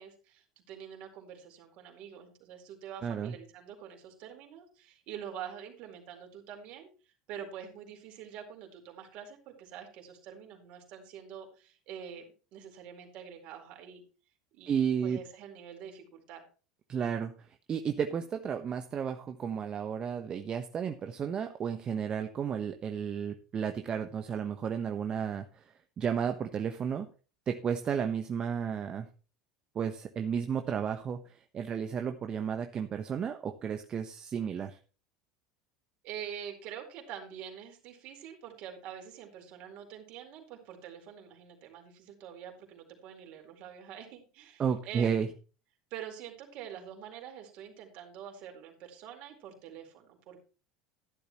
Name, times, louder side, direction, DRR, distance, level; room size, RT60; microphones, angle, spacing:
voice 1, 0.0-6.9 7.3-12.2 12.5-14.0 14.5-14.7 15.0-16.4 36.0-45.3 45.9-50.4, right 9 dB, 55° right, 3 dB, 4.4 m, -46 dB
voice 2, 3.0-3.3 14.7-15.2 16.9-17.3 17.7-25.6 26.0-27.1 27.5-29.1 29.7-34.8 44.6-45.3, right 7 dB, 35° right, 7 dB, 1.2 m, -33 dB
14.0 x 11.5 x 3.1 m, 0.36 s
hypercardioid pair, 75°, 2 cm